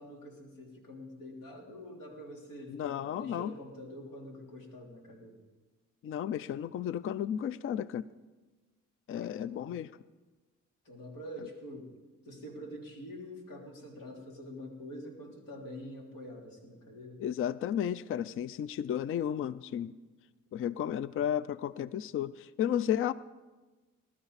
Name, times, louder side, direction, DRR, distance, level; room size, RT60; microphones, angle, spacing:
voice 1, 0.0-5.4 9.1-9.7 10.8-11.9 12.2-17.2, equal, 90° left, 0 dB, 3.3 m, -46 dB
voice 2, 2.7-3.5 6.0-8.1 9.1-9.9 17.2-19.9 20.5-23.1, left 10 dB, 45° left, 17 dB, 0.4 m, -33 dB
20.0 x 12.5 x 4.1 m, 1.2 s
cardioid pair, 90°, 30 cm